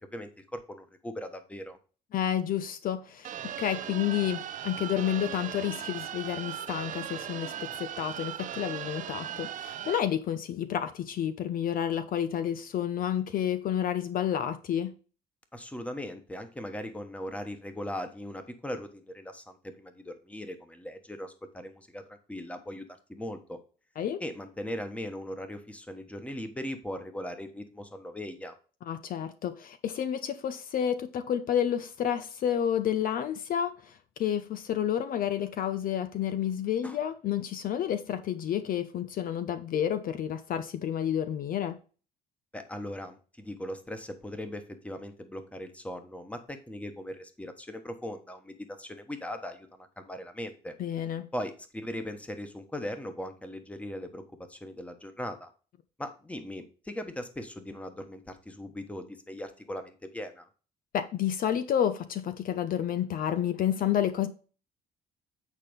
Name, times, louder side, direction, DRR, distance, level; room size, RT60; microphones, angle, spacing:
voice 1, 0.1-1.8 15.5-23.6 24.2-28.5 36.8-37.0 42.5-50.7 51.3-54.2 54.5-55.5 56.0-60.5, left 1 dB, 10° left, 1.3 m, -39 dB
voice 2, 2.1-14.9 24.0-24.2 28.9-33.9 34.2-41.8 50.8-51.3 60.9-64.3, left 10 dB, 55° left, 0.7 m, -30 dB
sound 1, 3.2-10.0, right 10 dB, 50° right, 0.6 m, -38 dB
8.4 x 4.2 x 5.2 m
cardioid pair, 110°, 17 cm